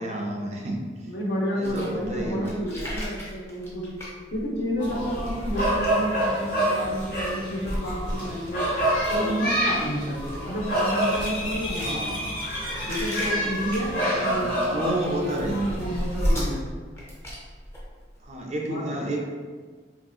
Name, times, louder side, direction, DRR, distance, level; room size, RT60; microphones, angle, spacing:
voice 1, 0.0-1.1 1.5-2.6 11.8-12.4 14.2-15.9 18.2-19.2, right 1 dB, 35° right, 0 dB, 0.3 m, -31 dB
voice 2, 1.1-3.9 4.3-8.7 9.1-12.3 12.9-16.6 18.7-18.9, equal, 70° left, -3 dB, 0.7 m, -30 dB
sound 1, 1.6-6.4 6.8-7.3 7.6-18.4, equal, 15° left, 0.6 m, -34 dB
sound 2, 4.8-16.4, equal, 50° left, 1.0 m, -28 dB
3.0 x 2.7 x 2.3 m, 1.5 s
head